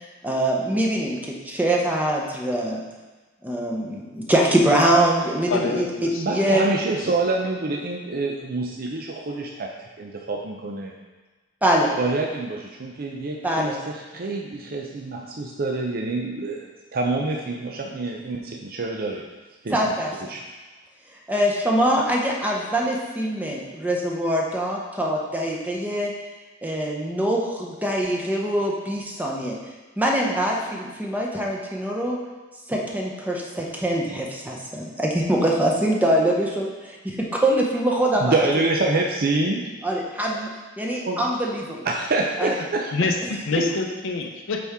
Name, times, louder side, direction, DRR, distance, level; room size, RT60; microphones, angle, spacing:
voice 1, 0.2-2.8 3.4-6.7 11.6-11.9 13.4-13.8 19.7-20.1 21.3-26.1 26.6-29.6 30.0-32.2 32.7-38.5 39.8-41.9 42.4-42.5 43.6-43.7, right 1 dB, 10° right, -2 dB, 0.8 m, -23 dB
voice 2, 5.5-6.4 7.0-7.1 42.9-44.6, left 3 dB, 65° left, 2 dB, 0.6 m, -26 dB
voice 3, 6.1-10.9 12.0-19.2 19.6-19.8 20.2-20.4 38.2-39.6 41.1-41.2 41.8-43.1 43.5-43.6, right 2 dB, 45° right, 0 dB, 0.6 m, -26 dB
8.4 x 4.3 x 3.5 m, 1.3 s
head